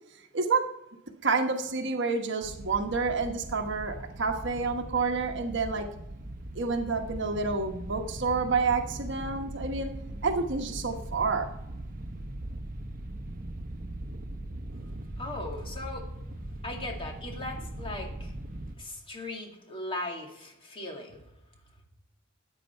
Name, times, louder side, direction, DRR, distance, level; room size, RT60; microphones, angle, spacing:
voice 1, 0.3-0.7 1.2-5.9 6.5-9.9 10.2-11.5, right 4 dB, 60° right, 4 dB, 1.2 m, -29 dB
sound 1, 2.4-18.7, right 1 dB, 45° right, 0.9 m, -40 dB
voice 2, 15.2-16.1 16.6-18.3 18.8-21.2, left 2 dB, 25° left, 1 dB, 2.3 m, -38 dB
13.5 x 9.3 x 4.4 m, 0.87 s
head